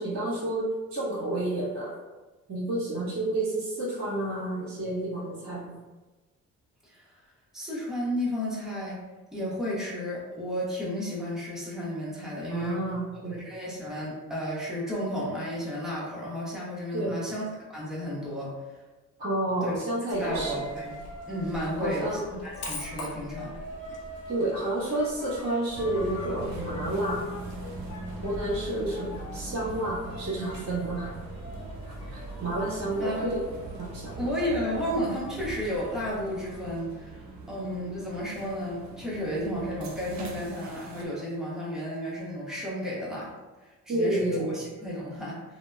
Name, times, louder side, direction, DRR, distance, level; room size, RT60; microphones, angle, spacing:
voice 1, 0.0-2.0 2.5-5.7 12.5-13.4 16.9-17.2 19.2-20.6 21.8-22.2 24.3-27.2 28.2-31.1 32.1-33.4 33.8-34.2 43.9-44.6, right 1 dB, 45° right, -9 dB, 1.1 m, -30 dB
voice 2, 6.8-7.2 7.5-9.0 9.3-12.8 13.4-17.4 17.7-18.5 19.6-19.7 20.2-20.9 21.3-22.1 22.4-23.5 32.0-32.2 33.0-33.3 34.2-43.3 43.6-45.4, equal, ahead, -7 dB, 0.9 m, -33 dB
Coin (dropping), 20.1-36.8, left 1 dB, 55° left, 0.7 m, -42 dB
sound 1, 25.7-41.0, right 2 dB, 70° right, 0.5 m, -41 dB
2.8 x 2.0 x 2.3 m, 1.2 s
cardioid pair, 90°, 30 cm